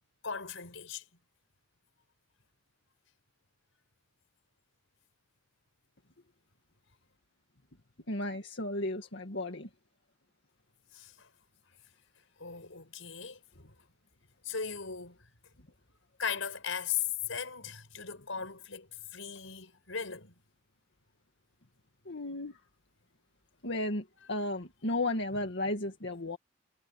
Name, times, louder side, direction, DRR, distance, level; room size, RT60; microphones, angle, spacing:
voice 1, 0.2-1.0 10.9-11.3 12.4-13.7 14.4-15.2 16.2-20.3 24.3-24.4, left 7 dB, 80° left, 5.2 m, -38 dB
voice 2, 8.1-9.7 22.1-22.6 23.6-26.4, left 2 dB, 60° left, 2.1 m, -34 dB
head